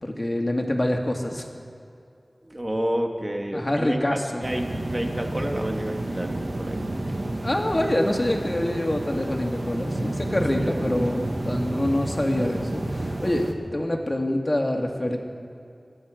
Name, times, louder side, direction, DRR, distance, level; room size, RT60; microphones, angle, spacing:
voice 1, 0.0-1.5 3.5-4.4 7.4-15.2, left 1 dB, 40° left, 2 dB, 2.2 m, -26 dB
voice 2, 2.4-4.0 4.4-7.2 10.6-10.8, equal, 30° right, 2 dB, 2.3 m, -30 dB
sound 1, 4.4-13.5, right 1 dB, 55° right, 1.5 m, -30 dB
26.5 x 10.0 x 5.1 m, 2.5 s
wide cardioid pair, 40°, 0 cm